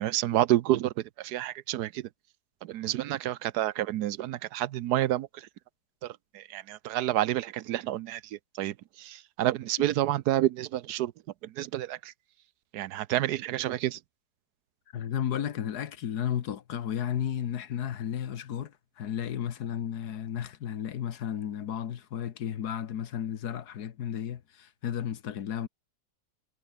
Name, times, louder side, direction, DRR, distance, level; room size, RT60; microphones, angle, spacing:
voice 1, 0.0-2.1 2.6-5.5 6.0-11.1 11.4-12.1 12.7-14.0, right 13 dB, 75° right, 1.2 m, -29 dB
voice 2, 14.9-25.7, left 9 dB, 75° left, 1.6 m, -33 dB
omnidirectional pair, 1.7 m